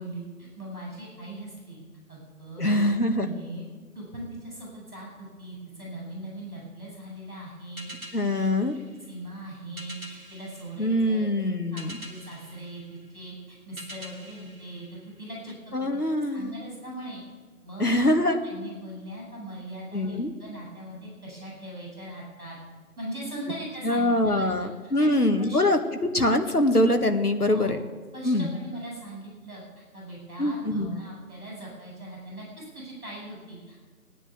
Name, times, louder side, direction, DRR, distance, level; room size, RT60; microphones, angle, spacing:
voice 1, 0.0-1.8 2.1-2.9 3.2-3.6 3.9-8.1 8.9-11.3 11.7-14.8 15.2-15.5 15.8-15.9 16.3-17.2 17.6-22.6 22.9-24.5 24.8-25.6 27.5-27.8 28.1-29.6 29.9-33.9, right 1 dB, ahead, -36 dB, 5.3 m, -40 dB
voice 2, 2.6-3.3 8.1-8.7 10.8-12.0 15.7-16.5 17.8-18.4 19.9-20.3 23.8-27.8 28.2-28.5 30.4-30.9, left 1 dB, 80° left, 6 dB, 1.9 m, -23 dB
sound 1, 7.8-15.6, equal, 65° right, 2.4 m, -47 dB
17.0 x 9.9 x 8.4 m, 1.4 s
figure-of-eight pair, 175°, 46 cm